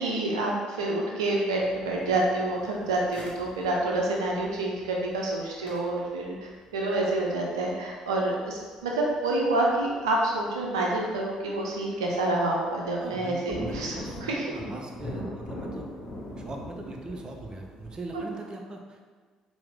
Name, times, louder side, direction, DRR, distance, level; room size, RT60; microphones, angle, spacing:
voice 1, 0.0-13.9 14.2-14.4 18.1-18.2, right 2 dB, 80° right, -1 dB, 0.4 m, -28 dB
sound 1, 1.6-9.6 9.9-10.0 10.6-10.9 11.3-11.7 12.1-12.2 12.5-18.3, left 1 dB, 40° left, 0.9 m, -41 dB
voice 2, 13.0-15.9 16.4-19.1, right 2 dB, 30° right, 2 dB, 0.6 m, -40 dB
4.5 x 2.0 x 3.5 m, 1.5 s
figure-of-eight pair, 50°, 3 cm